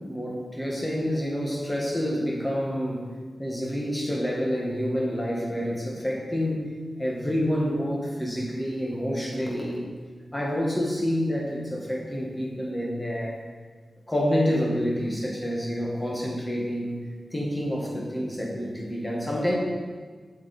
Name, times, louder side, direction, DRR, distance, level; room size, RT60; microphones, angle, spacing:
voice 1, 0.0-3.1 3.4-6.6 7.0-9.8 10.3-13.4 14.1-17.0 17.3-19.6, equal, 15° left, -3 dB, 1.7 m, -28 dB
7.8 x 7.6 x 4.3 m, 1.5 s
wide cardioid pair, 130°, 0 cm